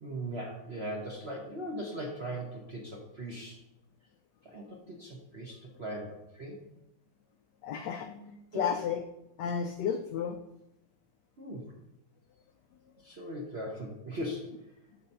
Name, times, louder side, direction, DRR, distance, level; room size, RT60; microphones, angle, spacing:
voice 1, 0.0-3.6 4.4-6.6 8.5-8.6 11.4-11.7 13.0-14.5, right 1 dB, 45° right, -1 dB, 0.8 m, -39 dB
voice 2, 7.6-9.0 9.4-10.4, left 7 dB, 80° left, 6 dB, 0.9 m, -33 dB
6.8 x 4.4 x 5.4 m, 0.85 s
omnidirectional pair, 2.3 m